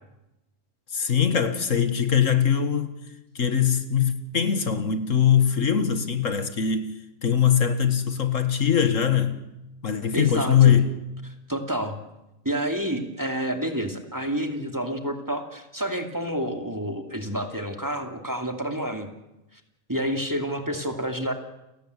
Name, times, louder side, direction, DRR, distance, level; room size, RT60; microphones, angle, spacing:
voice 1, 0.9-3.0 3.4-6.9 7.2-9.4 9.8-11.0, left 8 dB, 75° left, 2.0 m, -22 dB
voice 2, 10.1-10.7 11.5-12.0 12.4-19.1 19.9-21.3, equal, 15° right, 2.6 m, -29 dB
30.0 x 17.5 x 8.2 m
omnidirectional pair, 1.4 m